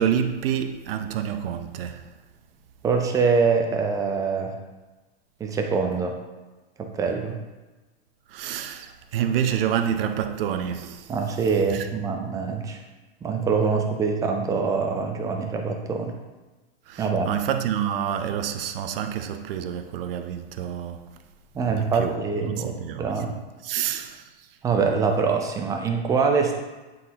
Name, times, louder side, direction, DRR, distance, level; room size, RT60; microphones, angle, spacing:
voice 1, 0.0-2.0 8.3-11.1 11.7-11.8 16.9-21.0 21.7-23.1 23.6-24.2, right 9 dB, 65° right, 0.7 m, -28 dB
voice 2, 2.8-4.5 5.4-6.2 6.8-7.4 11.1-12.8 13.2-16.1 17.0-17.3 21.5-23.4 23.7-23.9 24.6-26.6, right 5 dB, 10° right, 0.4 m, -24 dB
9.1 x 3.9 x 2.8 m
hypercardioid pair, 140°, 32 cm